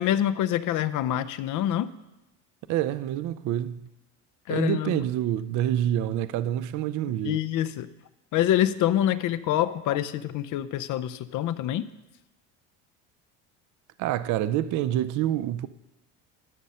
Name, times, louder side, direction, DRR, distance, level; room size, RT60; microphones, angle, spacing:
voice 1, 0.0-1.9 4.5-5.0 7.2-7.9 8.3-11.9, left 12 dB, 50° left, 0.6 m, -26 dB
voice 2, 2.7-3.9 4.5-7.4 14.0-15.7, right 12 dB, 50° right, 0.5 m, -27 dB
12.0 x 6.3 x 5.5 m
supercardioid pair, 95°, 39 cm